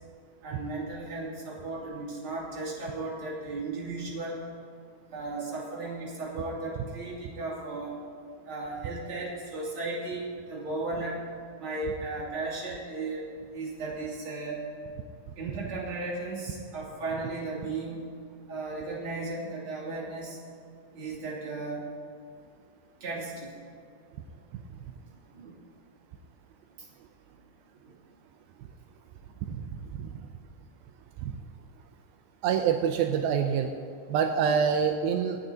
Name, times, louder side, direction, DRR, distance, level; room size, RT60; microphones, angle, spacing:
voice 1, 0.4-4.5 5.1-8.0 8.4-11.2 11.6-13.3 13.5-14.6 15.3-18.0 18.5-20.4 20.9-21.9 23.0-23.6 24.8-25.5 26.8-26.9 27.8-28.0, right 3 dB, 35° right, -5 dB, 3.1 m, -35 dB
voice 2, 32.4-33.7 34.1-35.4, right 7 dB, 85° right, 5 dB, 2.4 m, -26 dB
26.0 x 9.2 x 2.8 m, 2.3 s
omnidirectional pair, 4.3 m